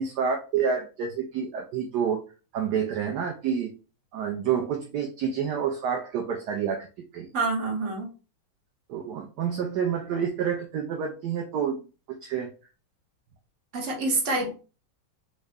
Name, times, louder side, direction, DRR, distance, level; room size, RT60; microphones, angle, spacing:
voice 1, 0.0-2.2 2.5-3.7 4.1-6.9 7.1-7.3 8.9-12.5, right 7 dB, 75° right, 2 dB, 0.9 m, -28 dB
voice 2, 7.3-8.1 13.7-14.5, right 3 dB, 45° right, 0 dB, 1.0 m, -27 dB
3.7 x 2.1 x 3.4 m, 0.34 s
omnidirectional pair, 2.3 m